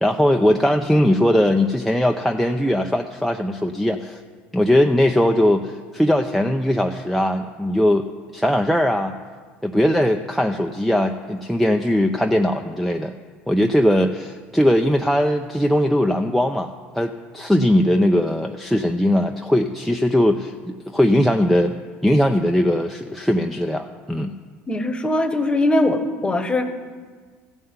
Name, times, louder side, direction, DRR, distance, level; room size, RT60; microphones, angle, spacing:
voice 1, 0.0-4.2 4.5-8.1 8.3-9.2 9.6-13.1 13.5-21.7 22.0-24.3, left 1 dB, ahead, 5 dB, 0.6 m, -19 dB
voice 2, 24.7-26.6, left 1 dB, 20° left, 8 dB, 1.2 m, -21 dB
15.0 x 5.5 x 8.0 m, 1.5 s
supercardioid pair, 85°, 5 cm